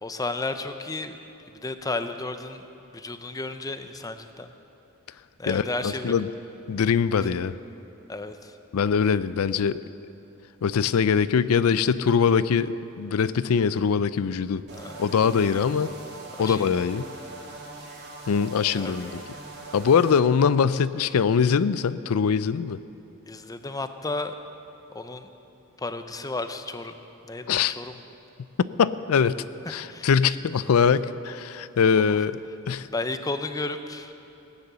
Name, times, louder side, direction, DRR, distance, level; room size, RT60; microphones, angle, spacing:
voice 1, 0.0-1.2 1.5-2.7 2.9-4.5 5.4-6.1 8.1-8.6 14.7-15.0 16.4-16.7 18.8-19.2 23.3-24.4 24.9-25.3 25.8-27.0 27.2-28.0 29.7-30.2 32.1-32.2 32.9-34.1, left 2 dB, 15° left, 9 dB, 0.6 m, -33 dB
voice 2, 5.5-6.3 6.7-7.5 8.7-9.8 10.6-14.6 15.0-15.9 16.4-17.0 18.3-19.2 19.7-22.8 27.5-27.8 28.8-29.4 29.7-32.3 32.7-32.9, left 6 dB, 80° left, 15 dB, 0.4 m, -22 dB
sound 1, 14.7-20.2, right 2 dB, 50° right, 2.2 m, -42 dB
17.0 x 9.8 x 6.8 m, 2.9 s
head